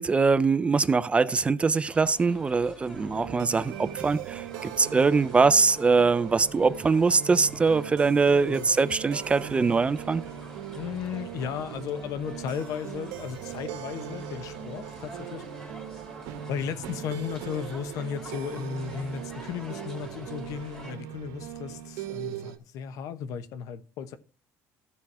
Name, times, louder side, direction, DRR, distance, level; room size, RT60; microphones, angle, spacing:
voice 1, 0.0-10.2, right 4 dB, 20° right, 0.3 m, -23 dB
sound 1, 1.9-21.0, right 1 dB, 10° left, 3.5 m, -47 dB
sound 2, 2.9-22.6, right 10 dB, 90° right, 1.3 m, -40 dB
voice 2, 10.7-15.4 16.5-24.2, left 8 dB, 70° left, 1.0 m, -35 dB
14.0 x 4.7 x 4.7 m
cardioid pair, 130°, 6 cm